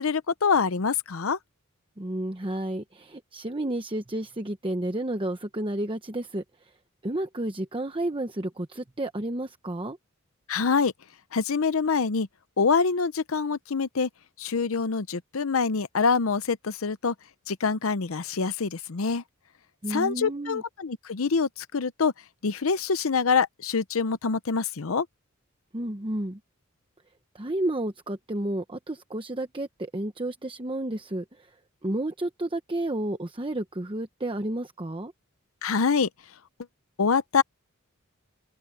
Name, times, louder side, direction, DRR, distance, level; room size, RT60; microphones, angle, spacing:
voice 1, 0.0-1.4 10.5-10.9 11.3-12.3 12.6-14.1 14.4-17.1 17.5-19.2 19.9-22.1 22.4-25.1 35.6-36.1 37.0-37.4, left 5 dB, 70° left, 0.7 m, -25 dB
voice 2, 2.0-6.4 7.0-10.0 19.8-20.6 25.7-26.4 27.3-31.5 31.8-35.1, right 1 dB, 25° right, 1.0 m, -31 dB
open air
head